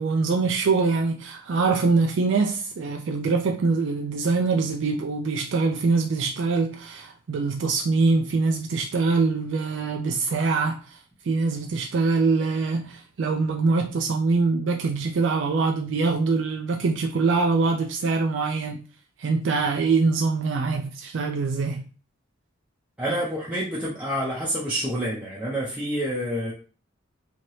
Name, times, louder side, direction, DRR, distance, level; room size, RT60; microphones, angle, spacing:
voice 1, 0.0-11.0 11.2-18.8 19.2-21.9, right 4 dB, 60° right, 0.4 m, -24 dB
voice 2, 23.0-26.5, equal, 5° right, 0.6 m, -28 dB
2.8 x 2.7 x 3.1 m
head